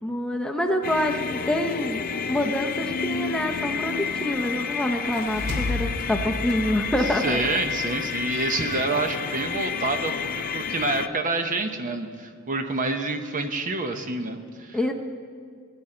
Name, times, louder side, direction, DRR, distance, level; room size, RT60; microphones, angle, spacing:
voice 1, 0.0-2.0 2.3-7.4 14.7-14.9, left 1 dB, 5° left, 3 dB, 0.7 m, -26 dB
sound 1, 0.8-11.1, left 6 dB, 40° left, 0.5 m, -30 dB
sound 2, 4.9-8.2, left 2 dB, 80° right, 2.9 m, -33 dB
voice 2, 7.1-14.8, right 2 dB, 35° right, 7 dB, 0.8 m, -28 dB
20.0 x 10.0 x 4.4 m, 2.2 s
head